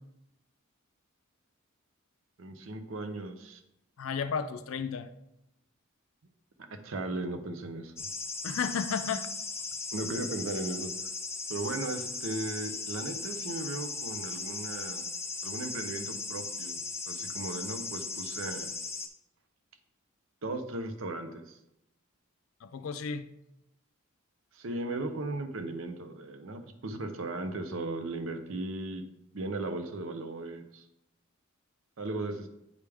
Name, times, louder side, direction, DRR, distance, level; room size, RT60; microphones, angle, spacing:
voice 1, 2.4-3.6 6.8-7.9 9.9-10.9 11.5-15.1 15.4-18.7 20.4-21.5 24.5-29.0 29.3-30.8 32.0-32.5, right 2 dB, 70° right, 7 dB, 0.7 m, -36 dB
voice 2, 4.0-5.1 8.4-9.3 22.6-23.3, left 6 dB, 75° left, 11 dB, 0.4 m, -33 dB
sound 1, 8.0-19.1, left 4 dB, 15° left, 0.5 m, -37 dB
9.5 x 3.4 x 3.4 m, 0.85 s
head